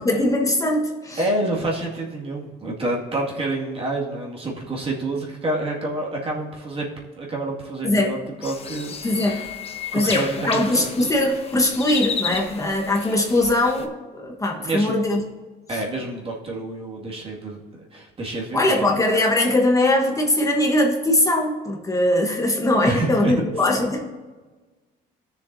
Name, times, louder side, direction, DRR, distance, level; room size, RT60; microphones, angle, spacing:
voice 1, 0.0-1.2 7.8-8.1 9.0-9.4 9.9-15.2 15.7-15.8 18.5-24.0, left 1 dB, 20° left, 0 dB, 1.3 m, -21 dB
voice 2, 1.2-6.9 7.2-9.0 9.2-9.5 9.9-10.9 14.5-14.9 15.7-17.6 17.9-19.0 22.8-23.3, right 2 dB, 35° right, -2 dB, 2.0 m, -28 dB
sound 1, 8.4-13.9, left 5 dB, 35° left, 1.0 m, -32 dB
15.5 x 6.8 x 2.7 m, 1.3 s
cardioid pair, 110°, 17 cm